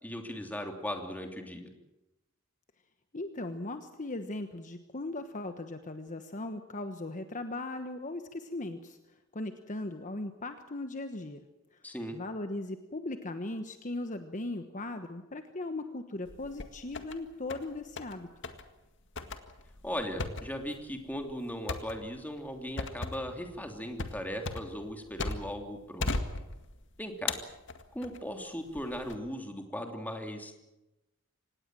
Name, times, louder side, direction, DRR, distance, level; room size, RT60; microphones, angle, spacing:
voice 1, 0.0-1.7 11.8-12.2 19.8-26.1 27.0-27.3 27.9-30.5, equal, 10° left, 4 dB, 3.0 m, -38 dB
voice 2, 3.1-9.0 9.3-11.5 11.7-11.8 12.1-18.3, left 2 dB, 35° left, 8 dB, 1.2 m, -38 dB
sound 1, 16.3-17.2 17.5-18.2 18.4-18.6 19.2-25.6 26.0-26.8 27.3-28.2 28.8-29.2, left 3 dB, 60° left, 1.9 m, -37 dB
25.5 x 19.5 x 7.6 m, 0.98 s
head